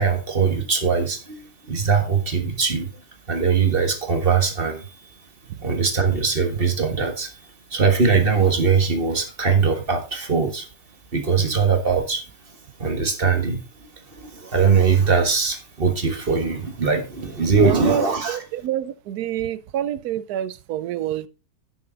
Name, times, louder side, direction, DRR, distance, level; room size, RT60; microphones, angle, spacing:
voice 1, 0.0-5.1 5.6-7.4 7.7-10.7 11.1-18.4, right 5 dB, 35° right, 1.7 m, -21 dB
voice 2, 17.6-21.3, right 11 dB, 70° right, 1.2 m, -27 dB
10.5 x 6.9 x 3.9 m
omnidirectional pair, 1.8 m